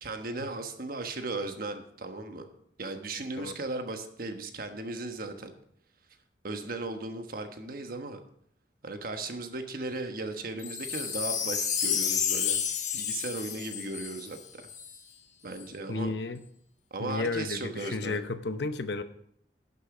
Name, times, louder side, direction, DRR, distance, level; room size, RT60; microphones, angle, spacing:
voice 1, 0.0-2.5 2.8-5.5 6.4-8.2 8.8-12.6 12.9-14.6 15.4-16.1 16.9-18.2, right 2 dB, 55° right, 6 dB, 1.2 m, -36 dB
Wind chime, 10.6-15.0 15.5-15.6, left 7 dB, 45° left, 1.2 m, -31 dB
voice 2, 15.9-16.4 17.0-19.0, left 3 dB, 75° left, 11 dB, 0.8 m, -32 dB
11.5 x 7.0 x 4.9 m, 0.70 s
head